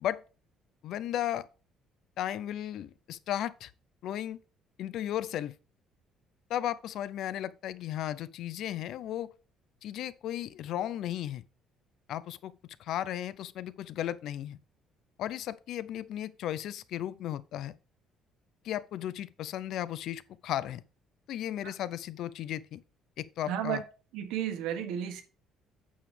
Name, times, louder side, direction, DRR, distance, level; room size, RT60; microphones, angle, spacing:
voice 1, 0.8-1.5 2.2-3.7 4.0-4.4 4.8-5.6 6.5-9.3 9.8-11.4 12.1-12.5 12.8-14.6 15.2-17.7 18.6-20.8 21.3-22.8 23.2-23.8, left 12 dB, 55° left, 0.5 m, -35 dB
voice 2, 23.4-23.8 24.1-25.2, right 10 dB, 85° right, 1.6 m, -33 dB
8.6 x 7.1 x 3.4 m
cardioid pair, 170°, 0 cm